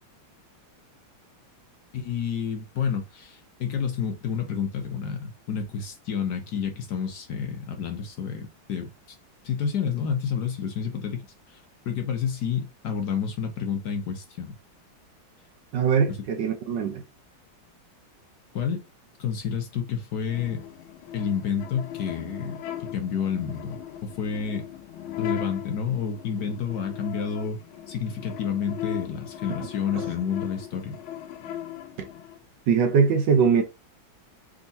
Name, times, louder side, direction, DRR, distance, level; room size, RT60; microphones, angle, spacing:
voice 1, 1.9-9.2 9.4-14.5 16.1-16.2 18.5-18.8 19.2-20.6 21.1-22.6 22.9-24.6 25.2-27.6 27.9-31.0, left 7 dB, 65° left, 1.2 m, -29 dB
voice 2, 15.7-17.0 29.9-30.1 32.7-33.6, right 6 dB, 65° right, 1.3 m, -21 dB
sound 1, 20.3-32.4, left 12 dB, 85° left, 1.6 m, -38 dB
3.6 x 3.6 x 4.0 m
omnidirectional pair, 2.3 m